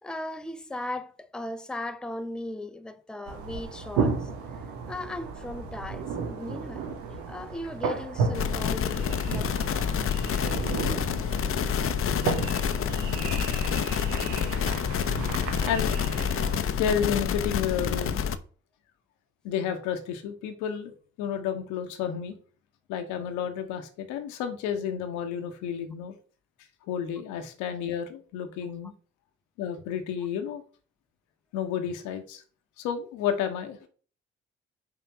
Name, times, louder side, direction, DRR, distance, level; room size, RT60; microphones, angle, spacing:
voice 1, 0.0-4.3 4.9-9.6 14.5-14.7, left 1 dB, 5° left, 0.6 m, -37 dB
sound 1, 3.3-16.6, right 5 dB, 80° right, 1.1 m, -33 dB
sound 2, 8.3-18.4, left 7 dB, 45° left, 0.7 m, -28 dB
voice 2, 14.0-14.3 14.7-14.8 15.6-16.0 16.8-18.2 19.4-20.9 21.2-22.4 22.9-26.1 26.9-28.9 29.6-30.6 31.5-32.4 32.8-33.9, left 8 dB, 80° left, 1.1 m, -31 dB
5.8 x 3.6 x 5.8 m
hypercardioid pair, 50°, 29 cm